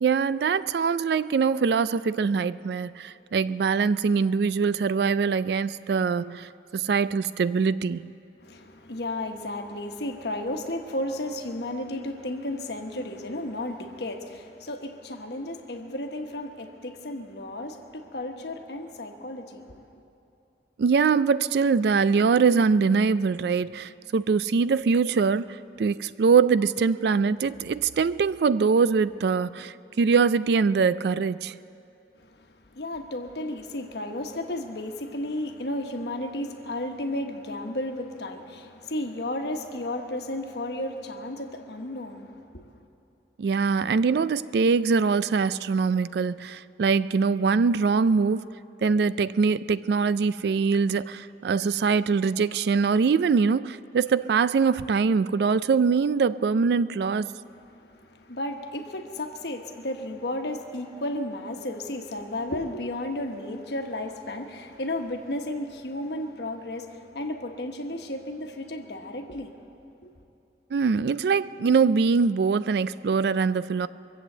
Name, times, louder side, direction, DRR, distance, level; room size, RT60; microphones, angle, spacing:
voice 1, 0.0-8.0 20.8-31.5 43.4-48.5 48.8-57.3 70.7-73.9, right 5 dB, 65° right, 0.3 m, -23 dB
voice 2, 8.4-19.8 32.2-42.8 57.5-69.6 70.0-70.1, left 1 dB, 70° left, 1.1 m, -33 dB
23.0 x 7.9 x 7.8 m
head